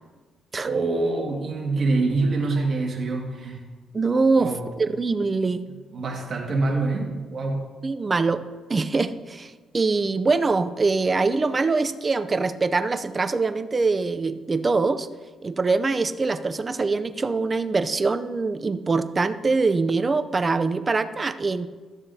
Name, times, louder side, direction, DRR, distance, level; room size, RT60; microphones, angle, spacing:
voice 1, 0.6-3.7 4.4-4.6 5.9-7.7, right 3 dB, 45° right, 0 dB, 1.9 m, -25 dB
voice 2, 3.9-5.6 7.8-8.4 8.7-15.1 15.4-21.7, right 3 dB, 30° right, 11 dB, 0.5 m, -23 dB
13.0 x 7.1 x 2.8 m, 1.4 s
cardioid pair, 90°, 0 cm